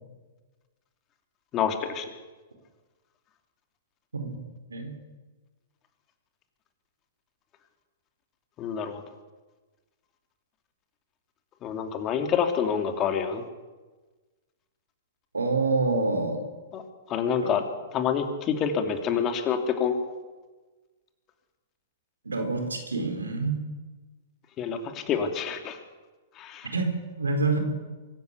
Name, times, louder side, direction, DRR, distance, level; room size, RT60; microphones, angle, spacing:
voice 1, 1.5-2.0 8.6-9.0 11.6-13.4 16.7-16.8 17.1-17.6 17.9-20.0 24.6-25.8 26.4-26.7, left 7 dB, 30° left, 6 dB, 3.0 m, -27 dB
voice 2, 15.3-16.4 17.4-17.5 22.2-23.6 26.6-27.6, right 3 dB, 85° right, 6 dB, 4.5 m, -27 dB
24.0 x 14.0 x 8.4 m, 1.3 s
hypercardioid pair, 115°, 0 cm